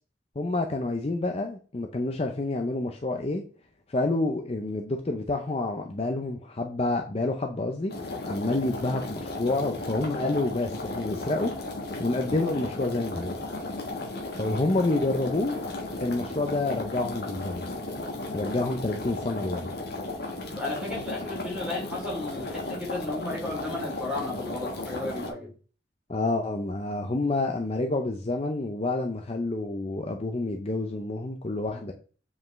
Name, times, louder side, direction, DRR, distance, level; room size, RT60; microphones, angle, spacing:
voice 1, 0.4-3.4 3.9-7.9 8.3-11.5 12.0-13.4 14.4-15.5 16.0-17.7 18.3-19.7 26.1-31.9, left 2 dB, 35° left, 0.6 m, -28 dB
sound 1, 7.9-25.3, left 2 dB, 60° left, 1.4 m, -35 dB
voice 2, 20.6-25.5, left 2 dB, 5° right, 3.1 m, -34 dB
7.6 x 4.9 x 3.2 m
head